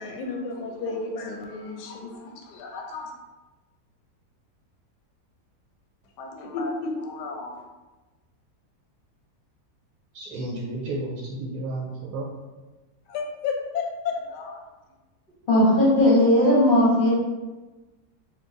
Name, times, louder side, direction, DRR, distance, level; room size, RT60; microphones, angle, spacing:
voice 1, 0.0-3.1 6.2-7.5 13.1-14.6, left 4 dB, 90° left, 2 dB, 1.2 m, -32 dB
voice 2, 10.1-12.2, right 2 dB, 85° right, -2 dB, 1.2 m, -32 dB
voice 3, 15.5-17.1, left 1 dB, 45° left, -8 dB, 0.7 m, -17 dB
4.5 x 2.3 x 2.5 m, 1.2 s
omnidirectional pair, 1.7 m